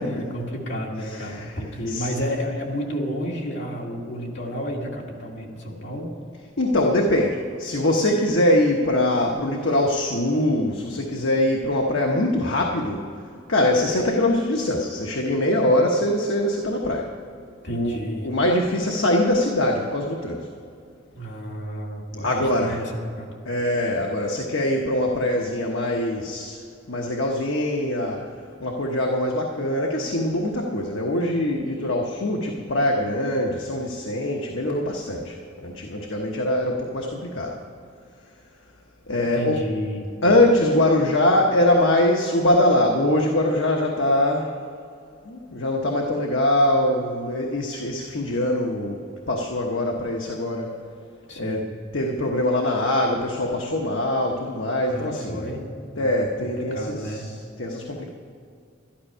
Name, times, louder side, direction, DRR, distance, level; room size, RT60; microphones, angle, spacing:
voice 1, 0.0-6.2 17.6-18.3 21.1-23.3 39.3-40.1 51.3-51.6 54.9-55.6 55.9-56.1 56.4-57.3, equal, 65° left, -2 dB, 2.3 m, -31 dB
voice 2, 1.1-1.5 1.9-2.1 6.6-13.1 13.5-17.1 17.7-20.5 22.2-22.8 23.5-26.6 26.9-28.3 28.6-37.6 39.1-39.6 40.2-44.6 45.2-50.7 51.4-51.6 51.9-55.4 56.0-57.2 57.6-58.1, left 1 dB, 85° left, 0 dB, 1.1 m, -23 dB
12.0 x 12.0 x 5.6 m, 2.4 s
head